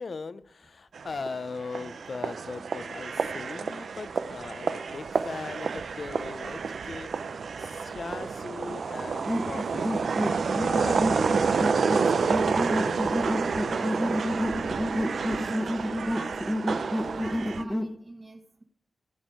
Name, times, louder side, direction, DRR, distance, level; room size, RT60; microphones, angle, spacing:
voice 1, 0.0-14.0, left 4 dB, 60° left, 14 dB, 0.7 m, -40 dB
sound 1, 0.9-17.6, right 5 dB, 80° right, 0.6 m, -29 dB
sound 2, 9.3-17.9, equal, 5° left, 1.2 m, -30 dB
voice 2, 14.9-16.6 16.9-18.6, right 1 dB, 25° right, 0 dB, 1.3 m, -44 dB
15.0 x 6.5 x 4.6 m, 0.65 s
wide cardioid pair, 80°, 0 cm